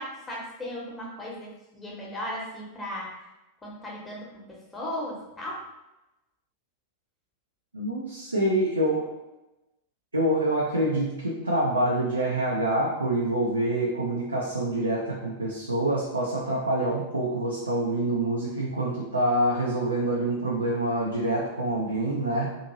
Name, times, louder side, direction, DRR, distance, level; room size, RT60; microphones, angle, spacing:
voice 1, 0.0-3.3 3.6-5.6, equal, 15° left, -4 dB, 0.9 m, -36 dB
voice 2, 7.7-9.1 10.1-22.5, right 1 dB, 80° right, -3 dB, 0.4 m, -26 dB
2.7 x 2.6 x 2.7 m, 0.97 s
figure-of-eight pair, 90°, 0 cm